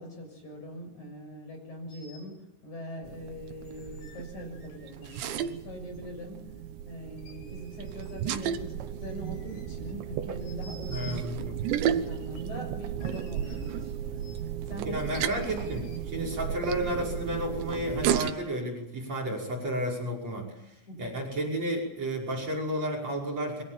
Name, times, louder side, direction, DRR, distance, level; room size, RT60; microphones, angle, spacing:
voice 1, 0.0-6.5 6.9-11.2 11.7-14.3 14.7-15.3 19.2-19.4 20.9-21.2, equal, 40° left, 4 dB, 7.8 m, -42 dB
sound 1, 1.9-2.2 3.6-5.5 5.9-6.0 7.1-8.4 9.0-9.9 10.4-11.3 12.1-12.6 13.0-13.9 14.2-14.4 15.0-16.0, left 4 dB, 75° left, 6.6 m, -53 dB
sound 2, 3.0-18.3, right 10 dB, 75° right, 3.4 m, -34 dB
voice 2, 10.9-11.6 14.8-23.6, equal, 35° right, 3 dB, 6.5 m, -32 dB
29.0 x 24.5 x 7.5 m, 0.82 s
omnidirectional pair, 5.3 m